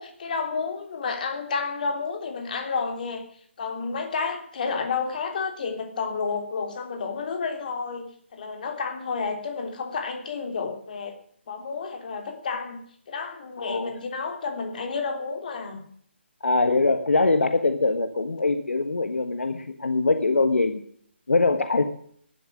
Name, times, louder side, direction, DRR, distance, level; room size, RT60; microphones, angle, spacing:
voice 1, 0.0-3.2 3.6-11.1 11.5-12.8 13.1-15.8, left 5 dB, 45° left, 5 dB, 3.4 m, -30 dB
voice 2, 13.6-13.9 16.4-20.8 21.3-21.8, left 3 dB, 90° left, 9 dB, 1.5 m, -23 dB
12.0 x 11.0 x 9.7 m, 0.62 s
hypercardioid pair, 160°, 7 cm